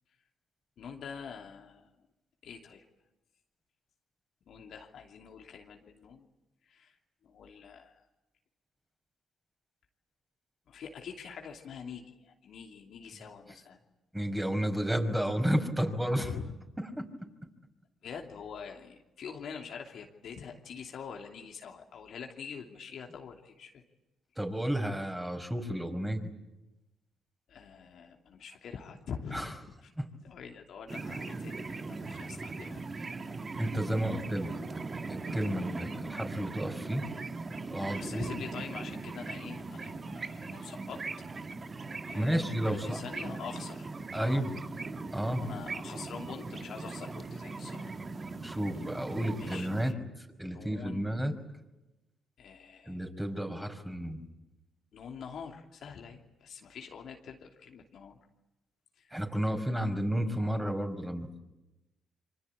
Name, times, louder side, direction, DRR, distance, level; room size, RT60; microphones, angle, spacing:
voice 1, 0.8-1.9 2.4-2.8 4.5-6.3 6.7-7.0 7.2-8.1 10.7-13.8 16.2-16.5 18.0-23.8 27.5-29.9 30.2-32.8 33.4-33.5 33.9-34.3 37.8-41.0 42.1-43.9 44.2-44.5 45.4-48.0 49.4-50.0 50.4-51.1 52.4-53.0 54.9-58.2 59.0-59.1, left 6 dB, 60° left, 2 dB, 2.9 m, -45 dB
voice 2, 14.1-16.3 17.0-17.1 24.4-26.3 29.3-29.5 30.0-30.1 33.6-34.5 35.1-37.1 37.7-38.3 42.1-43.0 44.1-44.6 45.1-45.5 48.4-49.9 50.4-51.3 52.9-54.2 59.1-61.4, equal, 10° right, 4 dB, 5.5 m, -31 dB
sound 1, 30.9-49.9, right 3 dB, 35° right, 1.7 m, -40 dB
27.0 x 25.0 x 8.7 m, 0.98 s
hypercardioid pair, 50°, 0 cm